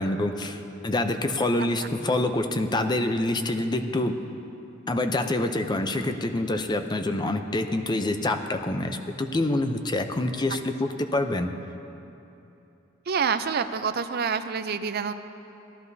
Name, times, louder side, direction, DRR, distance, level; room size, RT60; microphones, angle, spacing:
voice 1, 0.0-4.2 4.9-11.5, left 2 dB, 20° left, 7 dB, 0.5 m, -26 dB
voice 2, 13.1-15.1, right 6 dB, 50° right, 10 dB, 0.5 m, -27 dB
18.0 x 11.5 x 2.7 m, 2.9 s
head